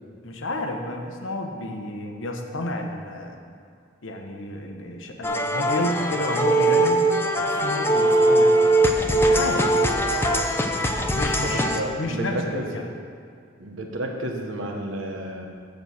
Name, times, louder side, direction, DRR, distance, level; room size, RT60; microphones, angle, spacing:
voice 1, 0.2-3.4 4.0-7.1 7.4-9.9 11.1-11.7 12.0-12.9, left 1 dB, 80° left, 3 dB, 1.0 m, -31 dB
sound 1, 5.2-11.8, right 1 dB, 10° left, 0.5 m, -21 dB
voice 2, 11.4-12.7 13.6-15.5, right 1 dB, 90° right, 2 dB, 1.1 m, -31 dB
6.8 x 6.3 x 7.0 m, 2.3 s
head